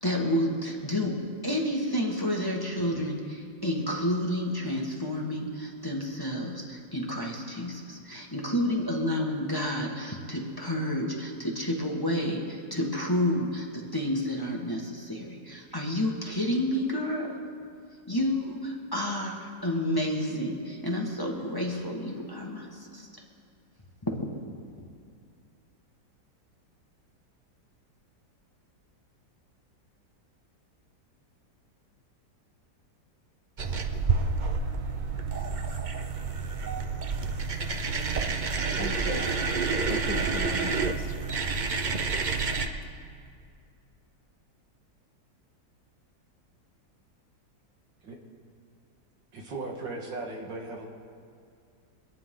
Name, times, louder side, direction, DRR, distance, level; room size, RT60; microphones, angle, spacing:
voice 1, 0.0-17.3 18.1-23.1 24.0-24.1, left 1 dB, 15° left, -1 dB, 1.4 m, -30 dB
sound 1, 33.6-42.7, right 4 dB, 60° right, 0.4 m, -29 dB
voice 2, 38.4-39.5 39.9-41.5 42.1-42.5, left 2 dB, 50° left, 2 dB, 1.6 m, -40 dB
voice 3, 49.3-50.9, right 3 dB, 80° right, 0 dB, 2.4 m, -37 dB
25.5 x 10.0 x 3.8 m, 2.3 s
omnidirectional pair, 2.0 m